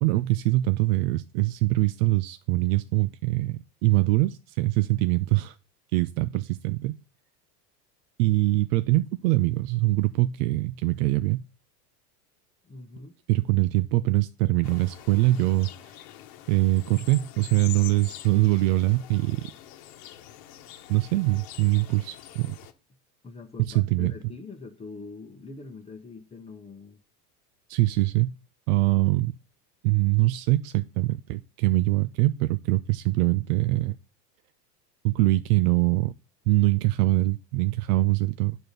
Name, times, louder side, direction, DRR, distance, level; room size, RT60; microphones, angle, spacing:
voice 1, 0.0-5.6 5.9-6.9 8.2-11.4 13.3-15.7 16.5-19.4 20.9-22.6 23.7-24.1 27.7-28.3 28.7-29.3 29.8-34.0 35.0-36.1 36.5-38.6, right 18 dB, 65° right, 0.6 m, -23 dB
voice 2, 12.6-13.1 23.2-27.0, left 3 dB, 15° left, 0.9 m, -43 dB
sound 1, 14.6-22.7, left 11 dB, 45° left, 1.2 m, -45 dB
9.0 x 4.4 x 6.6 m
supercardioid pair, 135°, 48 cm